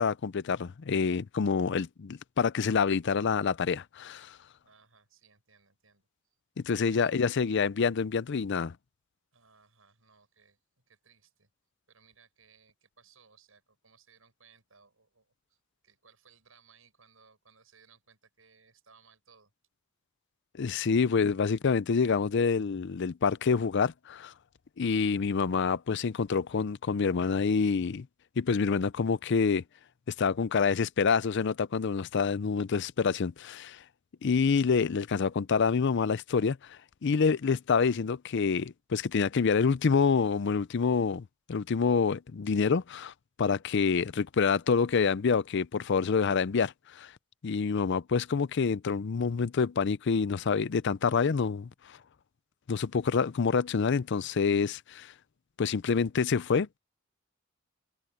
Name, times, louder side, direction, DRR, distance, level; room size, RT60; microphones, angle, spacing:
voice 1, 0.0-4.4 6.6-8.7 20.6-24.3 24.8-28.1 28.4-29.6 30.2-33.8 34.2-36.6 37.0-43.1 43.4-47.1 47.4-51.7 52.7-55.1 55.6-56.8, left 5 dB, 60° left, 0.5 m, -27 dB
voice 2, 4.6-6.1 6.7-7.2 9.3-11.5 11.9-19.5, right 6 dB, 85° right, 7.0 m, -62 dB
head